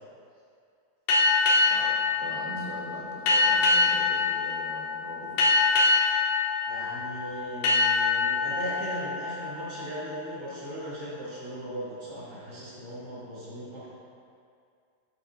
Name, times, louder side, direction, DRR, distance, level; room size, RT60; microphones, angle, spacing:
sound 1, 1.1-10.4, left 3 dB, 85° left, 2.5 m, -25 dB
voice 1, 1.7-5.5, right 2 dB, 85° right, -4 dB, 2.5 m, -41 dB
voice 2, 6.6-13.9, equal, 60° right, -10 dB, 0.8 m, -38 dB
9.2 x 4.7 x 2.6 m, 2.3 s
omnidirectional pair, 3.7 m